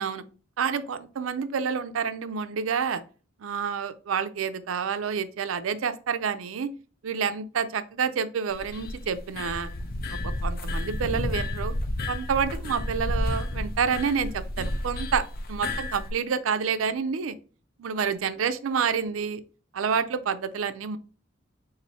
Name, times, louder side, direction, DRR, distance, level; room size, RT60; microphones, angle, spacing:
voice 1, 0.6-3.0 3.4-6.7 7.0-9.7 10.1-11.7 12.1-17.3 17.8-19.4 19.7-21.0, right 6 dB, 90° right, 12 dB, 0.4 m, -28 dB
sound 1, 8.5-16.1, left 1 dB, 45° left, 0.6 m, -31 dB
4.1 x 2.6 x 4.2 m, 0.36 s
head